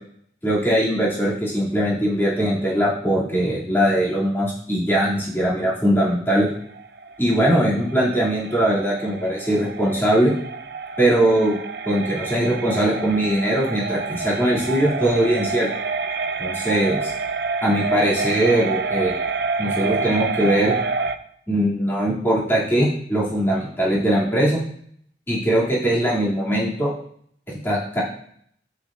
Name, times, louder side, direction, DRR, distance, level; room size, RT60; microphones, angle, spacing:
voice 1, 0.4-6.5 7.2-10.3 11.0-11.6 11.8-15.7 16.4-17.1 17.6-19.2 19.6-20.8 21.5-24.6 25.3-26.9 27.5-28.0, right 1 dB, 10° left, -8 dB, 2.6 m, -21 dB
sound 1, 6.5-21.2, right 4 dB, 60° right, 0.5 m, -28 dB
13.0 x 8.5 x 2.5 m, 0.67 s
head